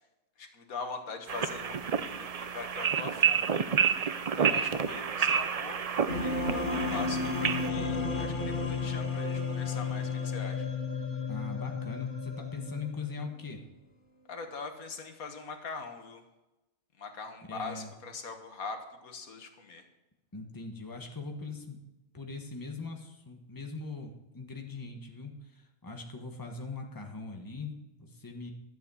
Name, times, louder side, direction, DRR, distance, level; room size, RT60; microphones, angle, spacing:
voice 1, 0.4-3.7 4.3-10.7 14.3-16.2 17.0-19.9, left 4 dB, 85° left, 5 dB, 1.9 m, -42 dB
sound 1, 1.3-7.7, right 7 dB, 65° right, 0.3 m, -29 dB
sound 2, 6.1-13.1, left 4 dB, 35° left, 1.6 m, -33 dB
voice 2, 11.3-13.6 17.5-17.9 20.3-21.8 22.1-27.7 28.0-28.5, left 3 dB, 15° left, 3 dB, 1.4 m, -41 dB
12.5 x 8.1 x 7.1 m, 1.0 s
omnidirectional pair, 1.4 m